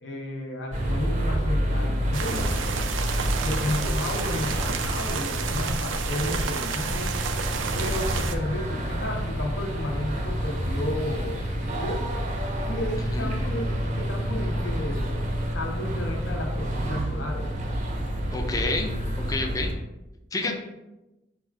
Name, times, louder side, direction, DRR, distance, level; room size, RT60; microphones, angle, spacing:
voice 1, 0.0-2.6 3.4-7.2 7.7-12.2 12.6-15.1 15.5-17.5 20.4-20.5, left 1 dB, 75° left, -1 dB, 0.8 m, -33 dB
sound 1, 0.7-19.7, equal, 40° right, 0.6 m, -28 dB
sound 2, 2.1-8.4, right 6 dB, 85° right, 0.4 m, -31 dB
voice 2, 18.3-18.9 19.3-19.7 20.3-20.5, left 2 dB, 20° left, 2 dB, 0.4 m, -28 dB
4.9 x 2.4 x 4.5 m, 0.98 s
head